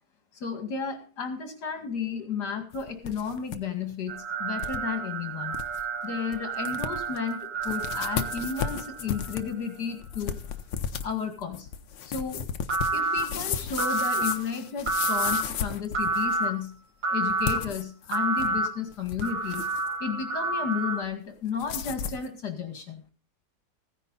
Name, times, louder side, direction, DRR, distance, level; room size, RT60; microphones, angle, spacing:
voice 1, 0.3-5.6 6.0-10.4 11.0-11.7 12.0-12.4 12.9-16.7 17.1-19.7 20.0-23.0, left 6 dB, 65° left, 6 dB, 2.7 m, -33 dB
sound 1, 2.7-3.6 3.9-4.0 4.6-4.8 5.2-5.3 5.5-5.8 6.3-6.4 6.7-7.2 7.6-16.4 17.3-18.6 18.9-19.9 21.6-22.3, left 8 dB, 85° left, 1.6 m, -34 dB
sound 2, 4.1-9.4 12.7-13.2 13.8-14.3 14.9-15.4 15.9-16.5 17.0-17.6 18.1-18.7 19.2-21.0, right 3 dB, 80° right, 2.4 m, -29 dB
16.0 x 10.0 x 4.0 m, 0.34 s
omnidirectional pair, 2.0 m